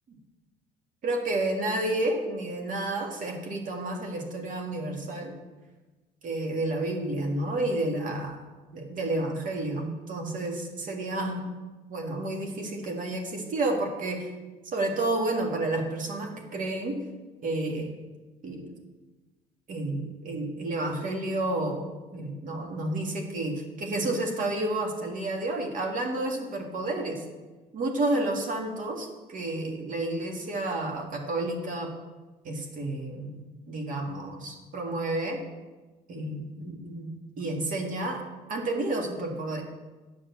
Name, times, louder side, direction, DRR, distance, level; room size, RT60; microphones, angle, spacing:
voice 1, 1.0-5.3 6.2-8.4 8.7-11.4 11.9-14.3 14.6-17.0 17.4-17.9 18.4-18.7 19.7-27.2 27.7-31.9 32.4-33.4 33.7-35.4 36.1-38.2 38.5-39.6, right 2 dB, 50° right, 2 dB, 1.9 m, -30 dB
8.6 x 6.2 x 7.0 m, 1.2 s
cardioid pair, 110°, 17 cm